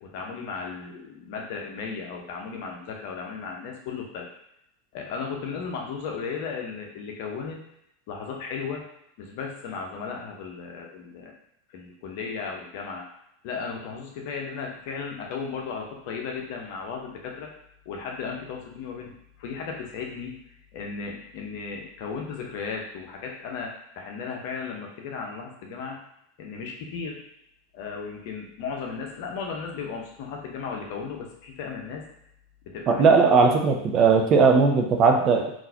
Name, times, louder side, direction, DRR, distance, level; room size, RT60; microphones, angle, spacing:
voice 1, 0.0-4.3 4.9-7.6 8.1-8.9 9.2-11.3 11.7-13.1 13.4-17.5 17.9-20.4 20.7-26.0 26.4-27.2 27.7-32.0 32.7-33.0, left 5 dB, 55° left, 1 dB, 0.7 m, -35 dB
voice 2, 32.9-35.5, right 4 dB, 35° right, 3 dB, 0.6 m, -18 dB
3.8 x 2.6 x 2.8 m, 0.77 s
figure-of-eight pair, 85°, 0 cm